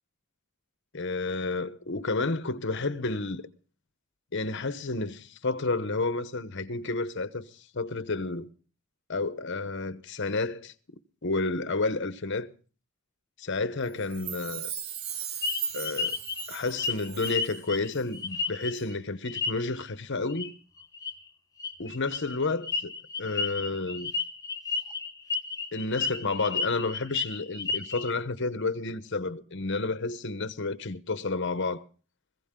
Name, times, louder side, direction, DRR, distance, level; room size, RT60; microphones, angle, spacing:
voice 1, 0.9-3.5 4.3-8.5 9.1-10.7 11.2-12.5 13.4-14.7 15.7-16.2 16.5-20.5 21.8-22.9 23.2-24.1 25.7-31.8, left 3 dB, 55° left, 1.0 m, -31 dB
Chime, 14.0-17.6 17.9-18.0, right 8 dB, 85° right, 1.4 m, -37 dB
sound 1, 15.4-18.9 19.3-19.9 20.3-20.5 20.8-21.1 21.6-28.1, left 4 dB, 15° left, 1.2 m, -32 dB
21.0 x 15.5 x 3.8 m
head